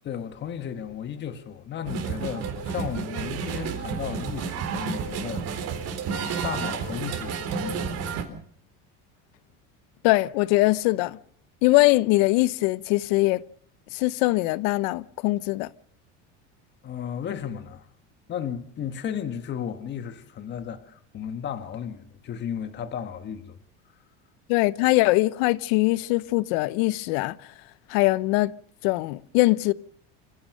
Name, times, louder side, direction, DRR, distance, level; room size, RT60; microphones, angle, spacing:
voice 1, 0.0-5.8 6.4-8.1 16.8-17.9 18.3-23.6, left 8 dB, 35° left, 1.5 m, -34 dB
sound 1, 1.8-8.2, right 6 dB, 50° right, 3.7 m, -31 dB
voice 2, 10.0-11.2 11.6-13.4 13.9-15.7 24.5-27.4 27.9-28.5 28.8-29.7, left 20 dB, 85° left, 0.9 m, -22 dB
27.0 x 16.0 x 6.6 m
cardioid pair, 155°, 33 cm